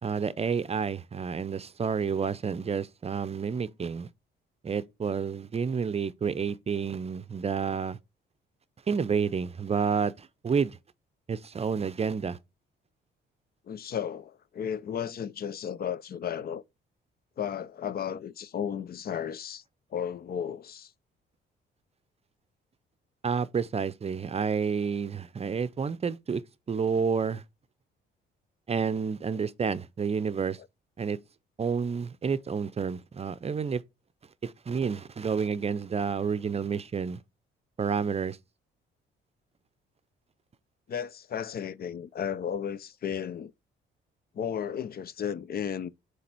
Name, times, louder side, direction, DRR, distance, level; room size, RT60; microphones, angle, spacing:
voice 1, 0.0-4.1 4.6-8.0 8.9-10.8 11.3-12.4 23.2-26.4 26.7-27.4 28.7-30.6 31.0-31.2 31.6-33.8 34.4-37.2 37.8-38.4, right 6 dB, 30° right, 0.6 m, -29 dB
voice 2, 13.7-16.6 17.4-19.6 19.9-20.9 40.9-43.5 44.4-45.9, left 8 dB, 50° left, 0.5 m, -34 dB
7.6 x 3.4 x 4.4 m
cardioid pair, 90°, 20 cm